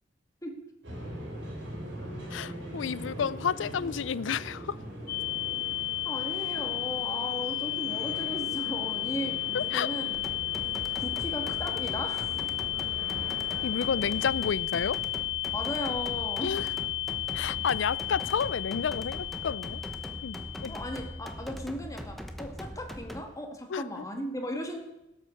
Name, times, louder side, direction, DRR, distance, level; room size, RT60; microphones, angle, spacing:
sound 1, 0.8-14.2, equal, 75° right, 5.2 m, -42 dB
voice 1, 2.3-4.8 9.5-9.9 13.6-15.0 16.4-16.7 17.3-19.8 20.2-20.8 23.7-24.0, left 7 dB, 85° left, 0.4 m, -31 dB
sound 2, 5.1-21.4, left 16 dB, 55° left, 0.7 m, -33 dB
voice 2, 6.0-10.2 11.0-12.4 15.5-16.7 20.7-24.8, equal, 20° left, 1.8 m, -37 dB
sound 3, 10.1-23.2, equal, ahead, 1.0 m, -41 dB
18.0 x 8.1 x 6.5 m
head